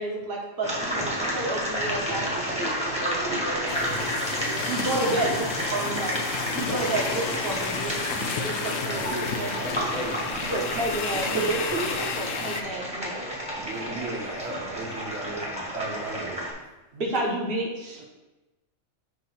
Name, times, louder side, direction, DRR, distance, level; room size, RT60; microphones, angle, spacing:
voice 1, 0.0-3.9 4.6-6.2 6.5-8.0 8.3-9.9 10.5-11.5 11.8-13.3 16.9-18.0, right 2 dB, 45° right, -2 dB, 1.2 m, -31 dB
sound 1, 0.6-16.5, equal, 5° right, 1.3 m, -31 dB
voice 2, 3.0-3.5 4.3-5.5 8.7-10.6 11.1-12.0 13.6-16.4, right 3 dB, 65° right, -5 dB, 1.6 m, -35 dB
sound 2, 3.7-12.6, left 6 dB, 70° left, 0.9 m, -32 dB
voice 3, 5.6-5.9 6.2-6.5 13.8-14.1 18.0-18.1, right 5 dB, 90° right, 1 dB, 1.2 m, -47 dB
6.3 x 3.0 x 5.7 m, 1.1 s
omnidirectional pair, 1.5 m